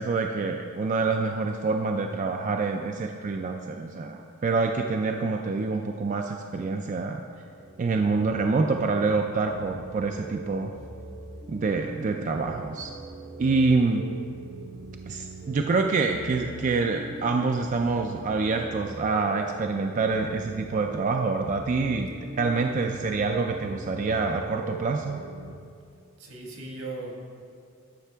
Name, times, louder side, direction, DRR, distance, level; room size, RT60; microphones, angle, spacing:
voice 1, 0.0-7.2 7.8-10.7 11.5-12.9 13.4-14.1 15.1-22.1 22.4-25.2, right 4 dB, 35° right, 3 dB, 0.3 m, -26 dB
sound 1, 7.3-25.5, right 3 dB, 60° right, 0.9 m, -42 dB
voice 2, 26.2-27.2, right 2 dB, 80° right, -1 dB, 1.6 m, -37 dB
11.5 x 5.8 x 3.4 m, 2.3 s
head